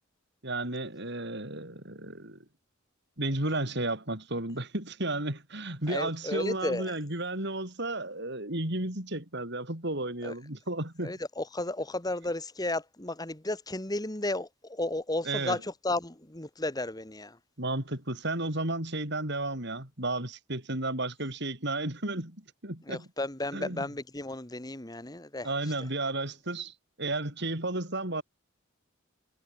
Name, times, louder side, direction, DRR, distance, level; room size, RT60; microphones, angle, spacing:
voice 1, 0.4-2.4 3.2-11.1 15.2-15.6 17.6-23.1 23.5-23.8 25.4-28.2, right 2 dB, 55° right, 6.3 m, -33 dB
voice 2, 5.9-7.0 10.2-10.3 11.0-17.4 22.9-25.7, left 2 dB, 20° left, 1.7 m, -33 dB
head